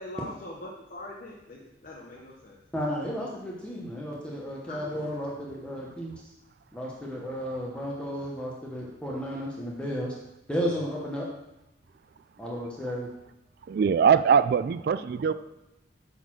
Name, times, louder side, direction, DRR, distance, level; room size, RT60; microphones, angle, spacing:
voice 1, 0.0-2.6 4.7-4.9 15.2-15.3, left 1 dB, 50° left, -2 dB, 0.9 m, -42 dB
voice 2, 2.7-6.1 6.7-10.1 10.5-11.3 12.4-13.1, equal, 5° left, -4 dB, 1.1 m, -33 dB
voice 3, 13.7-15.3, right 7 dB, 55° right, 14 dB, 0.3 m, -22 dB
8.6 x 4.1 x 6.2 m, 0.93 s
head